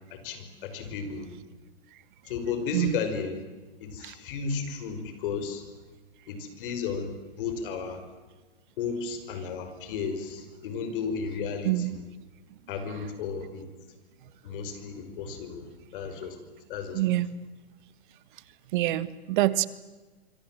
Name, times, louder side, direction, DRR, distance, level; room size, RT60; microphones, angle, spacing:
voice 1, 0.1-1.3 2.2-3.4 3.8-5.7 6.3-8.0 8.8-12.0 12.7-13.7 14.4-16.4 16.7-17.0, left 5 dB, 55° left, 8 dB, 5.5 m, -34 dB
voice 2, 11.6-12.0 12.9-13.0 16.9-17.3 18.7-19.7, right 15 dB, 50° right, 16 dB, 1.4 m, -26 dB
25.5 x 25.5 x 7.7 m, 1.3 s
hypercardioid pair, 125°, 31 cm